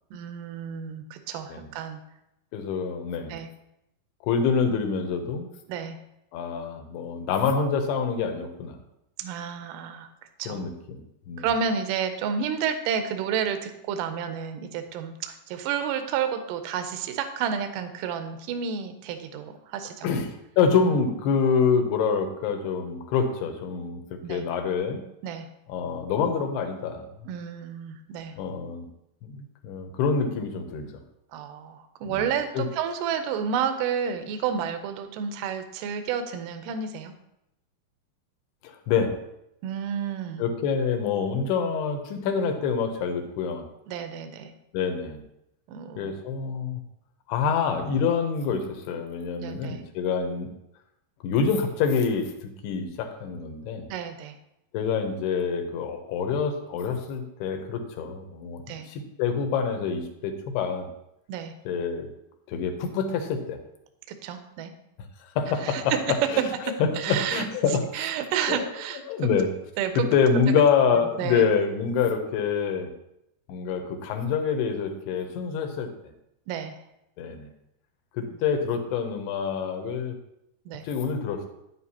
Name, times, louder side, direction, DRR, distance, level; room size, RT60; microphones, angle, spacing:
voice 1, 0.1-2.0 3.3-3.5 5.7-6.0 9.2-10.1 10.4-10.7 11.4-20.1 24.2-24.4 25.2-25.5 27.2-28.4 31.3-37.1 39.6-40.5 43.9-44.5 45.7-46.2 49.4-49.8 53.9-54.4 58.7-58.9 61.3-61.5 64.1-64.7 65.6-66.0 66.9-67.5 67.9-69.0 69.8-69.9 71.2-71.4 76.5-76.8 78.3-78.4 80.7-80.8, right 7 dB, 80° right, 7 dB, 1.9 m, -30 dB
voice 2, 2.5-3.4 4.2-5.5 6.3-8.8 10.5-11.5 20.0-24.0 24.3-25.0 25.7-27.1 28.4-28.9 29.2-30.9 32.1-32.2 32.5-32.7 38.6-39.2 40.4-43.6 44.7-45.2 46.0-46.8 47.3-50.5 51.2-53.9 54.7-60.9 61.7-62.1 62.5-63.6 65.4-66.5 66.8-68.1 68.5-68.7 69.1-69.5 70.0-72.9 73.5-75.9 77.2-77.5 78.1-80.2 80.8-81.5, left 6 dB, 85° left, 5 dB, 2.9 m, -26 dB
9.5 x 7.8 x 2.8 m, 0.83 s
omnidirectional pair, 4.6 m